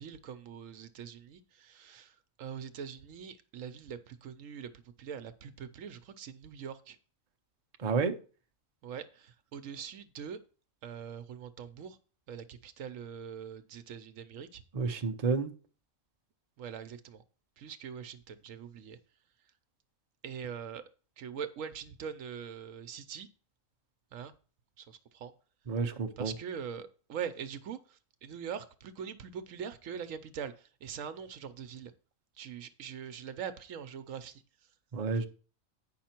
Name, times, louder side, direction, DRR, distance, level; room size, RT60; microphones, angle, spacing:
voice 1, 0.0-4.7 5.0-7.0 8.8-10.4 10.8-12.0 12.3-14.6 16.6-17.2 17.6-19.0 20.2-20.8 21.2-23.3 24.1-24.3 24.8-25.3 26.2-31.9 32.4-34.4, right 7 dB, 70° right, 1.0 m, -43 dB
voice 2, 7.8-8.1 14.7-15.5 25.7-26.3 34.9-35.3, right 4 dB, 40° right, 0.7 m, -30 dB
9.3 x 5.7 x 4.4 m
omnidirectional pair, 1.5 m